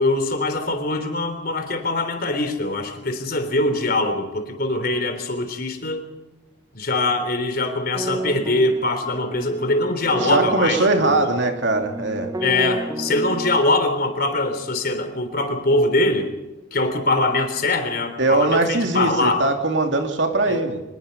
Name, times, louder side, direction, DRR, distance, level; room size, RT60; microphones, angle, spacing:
voice 1, 0.0-6.0 6.7-11.3 12.4-16.3 16.7-19.4 20.4-20.6, left 2 dB, 50° left, 8 dB, 3.4 m, -22 dB
sound 1, 7.9-13.6, right 2 dB, 15° right, 1.1 m, -31 dB
voice 2, 10.2-12.3 18.2-20.8, right 2 dB, 65° right, 4 dB, 2.8 m, -21 dB
24.5 x 20.5 x 5.4 m, 1.0 s
head